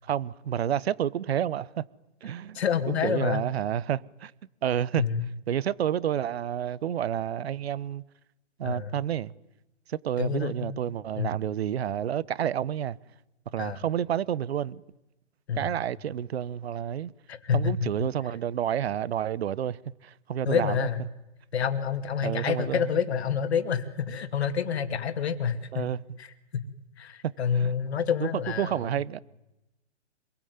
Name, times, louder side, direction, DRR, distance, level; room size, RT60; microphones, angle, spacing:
voice 1, 0.0-1.8 2.2-4.3 4.6-5.0 5.5-8.0 8.6-9.3 9.9-13.0 13.5-14.8 15.6-17.1 17.5-20.9 22.2-22.9 25.7-26.0 27.5-27.7 28.2-28.3 28.6-29.2, right 10 dB, 60° right, 1.0 m, -29 dB
voice 2, 2.5-3.4 5.0-5.2 8.6-8.9 10.2-10.8 11.2-11.4 13.6-13.8 15.5-15.7 17.3-17.7 20.4-21.0 21.5-25.9 26.2-26.3 27.0-28.8, left 7 dB, 60° left, 2.7 m, -28 dB
27.0 x 22.0 x 9.6 m
hypercardioid pair, 140°, 36 cm